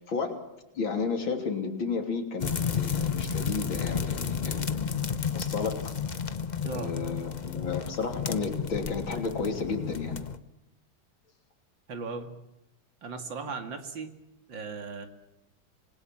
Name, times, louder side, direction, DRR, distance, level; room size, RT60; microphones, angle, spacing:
voice 1, 0.1-0.4 0.8-4.6 5.3-6.0 6.7-10.2, left 4 dB, 75° left, 4 dB, 3.7 m, -32 dB
sound 1, 2.4-10.4, left 6 dB, 45° left, 0.6 m, -32 dB
voice 2, 11.9-12.3 13.0-14.1 14.5-15.1, right 4 dB, 70° right, 6 dB, 3.0 m, -37 dB
26.5 x 20.5 x 7.5 m, 0.91 s
omnidirectional pair, 2.2 m